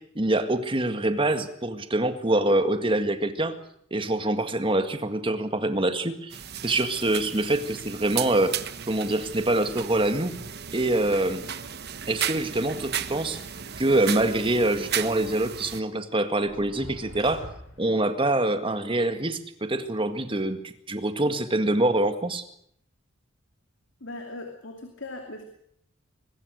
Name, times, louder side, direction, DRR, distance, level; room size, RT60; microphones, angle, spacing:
voice 1, 0.0-3.6 3.9-8.6 8.9-10.4 10.7-11.5 12.1-13.4 13.8-17.5 17.8-22.4, right 1 dB, 25° right, 9 dB, 1.9 m, -25 dB
sound 1, 6.3-15.8, right 9 dB, 55° right, 1.1 m, -35 dB
sound 2, 16.5-18.1, equal, 85° left, 6.6 m, -43 dB
voice 2, 24.0-25.4, left 2 dB, 65° left, 4 dB, 2.8 m, -39 dB
23.0 x 21.0 x 6.5 m, 0.70 s
head